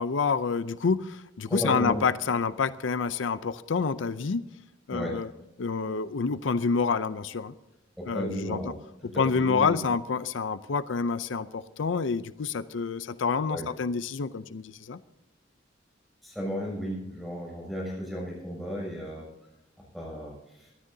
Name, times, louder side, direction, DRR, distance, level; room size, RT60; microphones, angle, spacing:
voice 1, 0.0-4.5 4.9-5.3 5.6-7.5 8.1-8.6 9.2-15.0, left 5 dB, 80° left, 14 dB, 0.5 m, -28 dB
voice 2, 1.5-2.0 4.9-5.2 8.0-8.8 9.0-9.8 13.5-13.7 16.2-19.2 19.9-20.7, equal, ahead, -3 dB, 6.7 m, -34 dB
23.5 x 13.5 x 2.7 m, 0.94 s
head